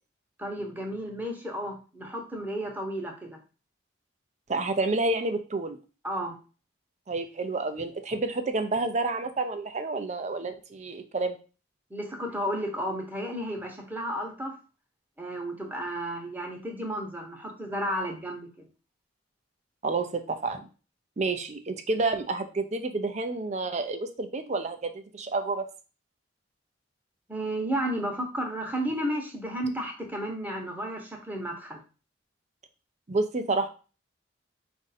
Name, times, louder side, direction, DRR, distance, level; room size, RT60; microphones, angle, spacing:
voice 1, 0.4-3.4 6.0-6.3 11.9-14.6 15.2-18.7 27.3-31.8, equal, 10° right, 1 dB, 0.9 m, -33 dB
voice 2, 4.5-5.8 7.1-11.4 19.8-20.7 21.2-25.7 33.1-33.7, right 3 dB, 35° right, 8 dB, 0.5 m, -29 dB
4.8 x 2.6 x 4.1 m, 0.34 s
head